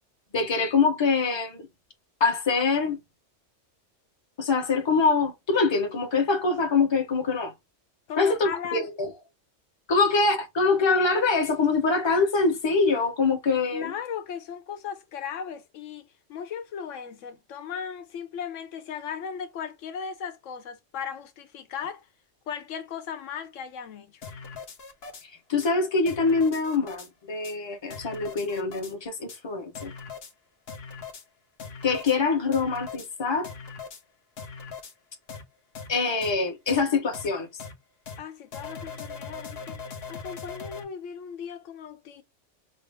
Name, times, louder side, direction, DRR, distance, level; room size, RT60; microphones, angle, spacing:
voice 1, 0.3-1.7 2.2-3.0 4.4-7.5 8.2-9.1 9.9-13.9 25.5-29.9 31.8-33.5 35.9-37.5, left 4 dB, 25° left, 0.8 m, -24 dB
voice 2, 8.1-8.9 13.7-22.1 22.5-24.2 38.2-39.8 40.1-42.2, left 7 dB, 90° left, 1.1 m, -37 dB
sound 1, 24.2-25.2 25.6-25.7 26.1-27.1 27.4-27.5 27.9-28.9 29.3-29.4 29.7-30.3 30.7-31.2 31.6-32.2 32.5-33.1 33.4-34.0 34.4-34.9 35.3-35.4 35.7-35.9 36.2-36.3 36.7-36.8 37.1-37.3 37.6-37.7 38.1-38.2 38.5-40.8, left 5 dB, 60° left, 1.0 m, -40 dB
5.4 x 2.0 x 3.3 m
omnidirectional pair, 1.2 m